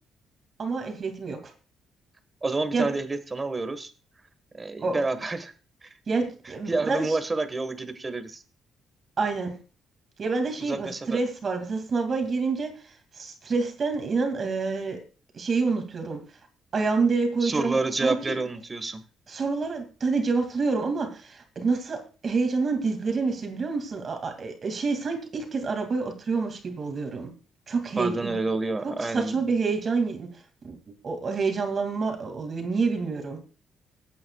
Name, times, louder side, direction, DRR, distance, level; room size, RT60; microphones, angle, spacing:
voice 1, 0.6-1.4 2.7-2.9 4.8-5.0 6.1-7.2 9.2-9.5 10.2-12.8 13.2-15.0 15.3-16.2 16.7-18.3 19.3-27.3 27.7-28.3 28.8-30.3 30.6-30.8 31.0-33.4, right 4 dB, 45° right, 6 dB, 2.4 m, -27 dB
voice 2, 2.4-3.9 4.6-5.5 6.7-8.4 10.6-11.2 17.4-19.0 28.0-29.5, right 3 dB, 25° right, 9 dB, 1.5 m, -28 dB
20.0 x 8.5 x 2.4 m, 0.34 s
cardioid pair, 90°, 0 cm